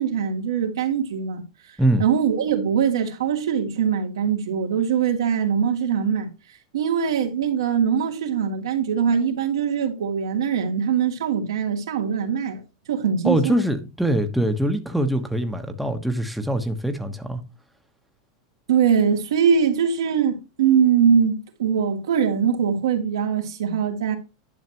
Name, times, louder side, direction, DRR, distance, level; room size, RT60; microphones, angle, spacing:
voice 1, 0.0-1.4 2.0-6.3 6.7-12.6 12.9-13.6 18.7-24.2, right 7 dB, 85° right, 2.4 m, -22 dB
voice 2, 13.2-17.4, right 1 dB, ahead, 1.1 m, -23 dB
11.0 x 6.5 x 3.0 m
supercardioid pair, 130°, 2 cm